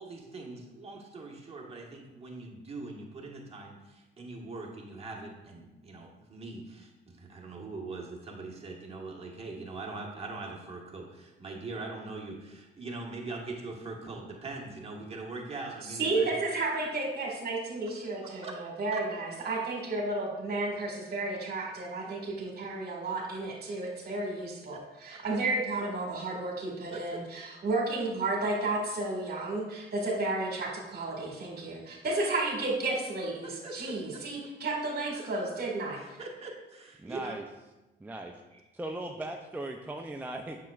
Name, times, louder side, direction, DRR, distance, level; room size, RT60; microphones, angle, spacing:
voice 1, 0.0-16.3 18.2-18.6 18.9-19.0 19.4-19.5 24.7-24.9 25.1-25.2 26.9-27.2 33.4-34.2 35.1-35.2 36.0-37.4 38.5-38.6, right 3 dB, 30° right, -1 dB, 1.4 m, -42 dB
voice 2, 15.9-36.2, right 2 dB, 50° right, -1 dB, 1.8 m, -32 dB
voice 3, 37.0-37.4 38.0-38.3 38.7-40.6, right 1 dB, 10° right, 3 dB, 0.4 m, -38 dB
7.4 x 6.1 x 2.4 m, 1.0 s
cardioid pair, 90°, 20 cm